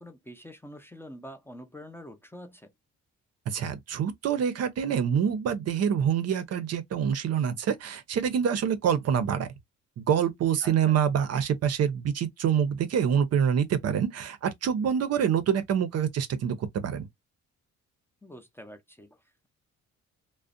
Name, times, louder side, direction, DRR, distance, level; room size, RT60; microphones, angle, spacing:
voice 1, 0.0-2.7 10.6-11.0 18.2-19.5, equal, 10° left, 0.5 m, -46 dB
voice 2, 3.5-9.5 10.0-17.1, right 8 dB, 55° right, 0.6 m, -26 dB
2.4 x 2.1 x 2.4 m
cardioid pair, 90°, 30 cm